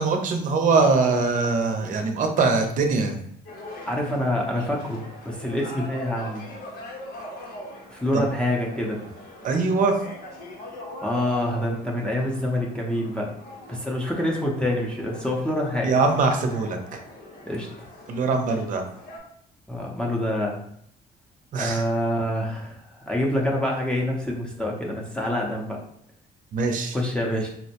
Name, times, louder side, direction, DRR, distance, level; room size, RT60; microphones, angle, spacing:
voice 1, 0.0-3.2 8.1-8.2 9.4-10.0 15.8-17.0 18.1-18.8 21.5-21.8 26.5-27.0, right 4 dB, 50° right, 4 dB, 0.6 m, -22 dB
sound 1, 3.5-19.2, left 1 dB, 85° left, 1.0 m, -42 dB
voice 2, 3.9-6.4 7.9-9.0 11.0-13.3 13.7-15.9 17.4-17.9 19.7-20.6 21.5-25.8 26.9-27.5, left 1 dB, 5° left, -3 dB, 0.6 m, -26 dB
4.2 x 2.1 x 2.8 m, 0.69 s
cardioid pair, 110°, 17 cm